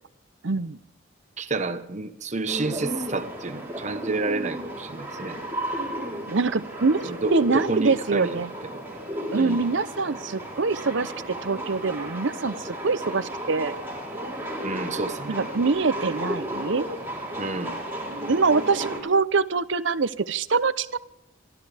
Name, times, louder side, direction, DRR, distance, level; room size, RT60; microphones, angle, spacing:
voice 1, 0.4-0.8 6.3-8.5 9.3-13.7 15.3-16.9 18.3-21.0, right 4 dB, 65° right, 15 dB, 0.7 m, -24 dB
voice 2, 1.4-5.4 7.0-8.4 8.7-8.8 9.4-9.6 14.6-15.4 17.4-17.7, right 3 dB, 35° right, 10 dB, 1.1 m, -30 dB
sound 1, 2.5-19.0, right 1 dB, 10° right, 3.7 m, -34 dB
28.0 x 13.0 x 3.5 m, 0.86 s
head